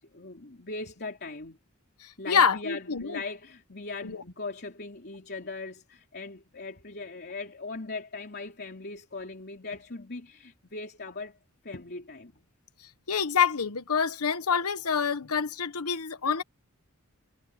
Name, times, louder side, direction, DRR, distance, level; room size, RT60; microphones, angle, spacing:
voice 1, 0.0-1.6 2.2-11.4 11.6-12.5, left 3 dB, 50° left, 3.2 m, -39 dB
voice 2, 2.0-3.2 4.0-4.2 13.1-16.4, left 6 dB, 90° left, 1.2 m, -27 dB
head